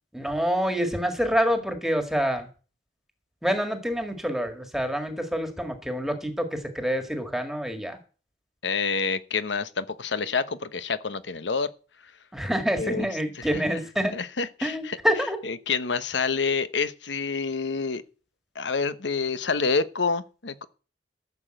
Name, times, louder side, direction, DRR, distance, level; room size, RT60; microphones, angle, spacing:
voice 1, 0.1-2.5 3.4-6.5 6.7-8.0 12.3-14.1 14.6-15.4, equal, ahead, 1.8 m, -27 dB
voice 2, 8.6-11.7 12.7-13.1 13.3-13.8 14.1-15.0 15.4-18.0 18.5-20.7, left 5 dB, 80° left, 1.0 m, -28 dB
14.0 x 7.1 x 7.7 m
head